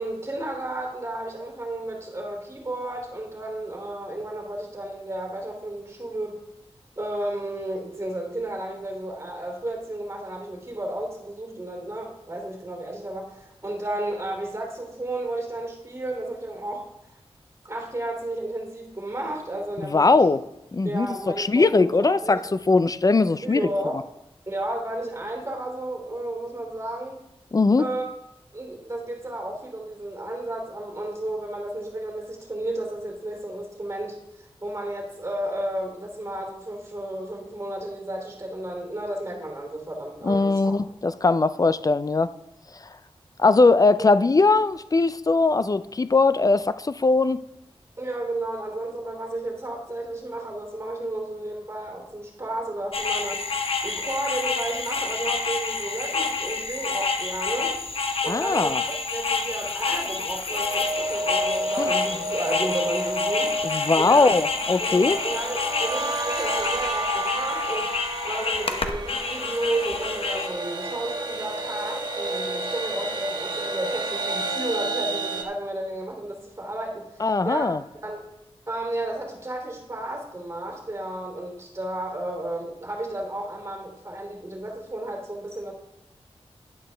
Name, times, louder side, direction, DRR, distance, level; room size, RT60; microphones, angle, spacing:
voice 1, 0.0-6.4 7.0-16.8 17.6-20.3 20.8-22.4 23.4-24.0 24.5-27.2 27.8-28.1 28.5-40.7 44.0-44.2 48.0-53.4 53.8-57.7 58.2-64.3 64.8-77.7 78.0-78.3 78.7-85.7, right 1 dB, 25° right, 1 dB, 2.9 m, -32 dB
voice 2, 19.9-20.4 20.7-23.6 27.5-27.9 40.2-42.3 43.4-47.4 58.3-58.8 61.8-61.9 63.6-65.2 77.2-77.8, left 3 dB, 35° left, 14 dB, 0.4 m, -20 dB
sound 1, 52.9-70.5, left 4 dB, 65° left, 0.9 m, -28 dB
sound 2, 60.5-75.4, right 2 dB, 45° right, 1.3 m, -30 dB
11.0 x 9.5 x 3.4 m, 0.86 s
wide cardioid pair, 65°, 10 cm